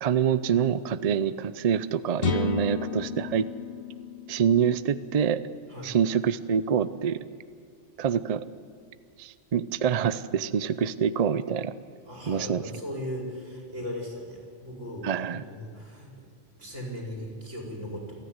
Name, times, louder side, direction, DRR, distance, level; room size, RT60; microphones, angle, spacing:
voice 1, 0.0-3.5 4.3-5.4 5.8-7.2 8.0-8.4 9.2-11.7 12.3-12.6 15.0-15.4, right 7 dB, 50° right, 14 dB, 0.4 m, -26 dB
sound 1, 2.2-6.0, left 7 dB, 85° left, 1.4 m, -33 dB
voice 2, 12.1-16.1 16.5-18.2, equal, 70° right, -2 dB, 5.4 m, -38 dB
27.5 x 10.0 x 9.5 m, 2.1 s
omnidirectional pair, 1.3 m